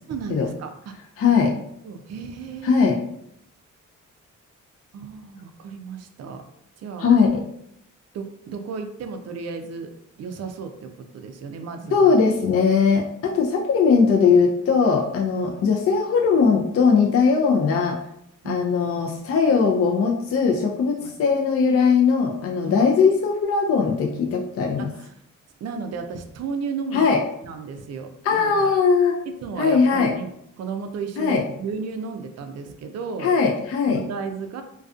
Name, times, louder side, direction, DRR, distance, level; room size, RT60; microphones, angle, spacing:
voice 1, 0.1-0.9 1.3-1.5 1.8-2.9 4.9-6.4 6.8-7.1 8.1-9.9 10.2-12.2 15.3-15.7 18.4-18.7 21.0-21.2 22.8-22.9 24.8-25.1 25.6-28.7 29.3-30.3 30.6-33.3 33.9-34.6, right 5 dB, 50° right, 6 dB, 0.4 m, -34 dB
voice 2, 1.2-1.5 2.6-3.0 7.0-7.3 11.9-18.0 18.4-24.9 26.9-27.2 28.2-29.2 29.6-30.1 31.2-31.4 33.2-34.0, left 5 dB, 45° left, 0 dB, 0.4 m, -19 dB
2.4 x 2.3 x 2.4 m, 0.74 s
cardioid pair, 70°, 33 cm